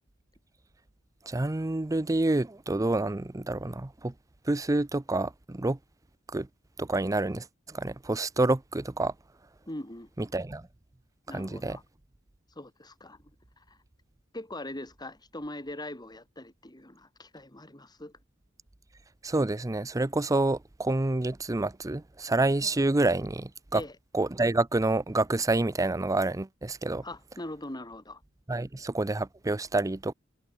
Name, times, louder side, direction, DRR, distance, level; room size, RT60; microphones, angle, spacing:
voice 1, 1.3-4.1 4.5-5.8 6.3-6.5 6.8-9.1 10.2-10.6 11.3-11.8 19.2-23.8 24.1-27.0 28.5-30.1, right 2 dB, 15° right, 0.5 m, -28 dB
voice 2, 9.7-10.3 11.3-11.8 12.5-13.2 13.6-13.8 14.3-18.1 23.7-24.0 27.0-28.2, left 1 dB, 20° left, 3.3 m, -41 dB
head